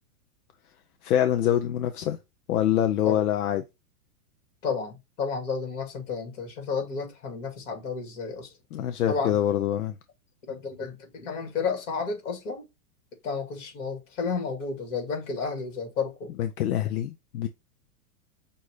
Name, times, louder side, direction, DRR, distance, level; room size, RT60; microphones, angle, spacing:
voice 1, 1.0-2.2 2.5-3.6 8.7-9.9 16.4-17.5, left 11 dB, 80° left, 0.7 m, -25 dB
voice 2, 4.6-8.5 9.1-9.4 10.5-12.6 13.2-16.3, left 5 dB, 55° left, 2.3 m, -31 dB
5.6 x 2.7 x 3.1 m
supercardioid pair, 165°, 44 cm